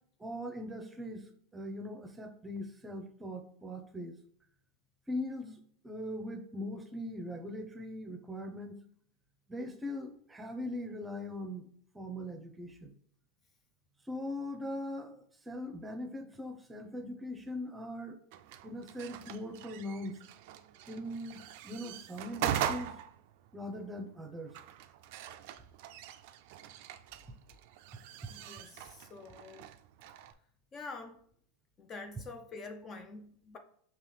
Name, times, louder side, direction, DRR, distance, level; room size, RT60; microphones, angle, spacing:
voice 1, 0.2-1.2 1.5-4.2 5.1-8.8 9.5-11.7 11.9-12.9 14.1-18.2 18.6-20.2 20.9-22.9 23.5-24.5, left 1 dB, 15° right, 0.7 m, -40 dB
sound 1, 18.3-30.3, right 10 dB, 60° right, 0.3 m, -41 dB
voice 2, 28.3-29.7 30.7-31.2 31.8-33.6, left 3 dB, 30° left, 0.5 m, -46 dB
5.5 x 2.9 x 3.3 m
hypercardioid pair, 115°, 0 cm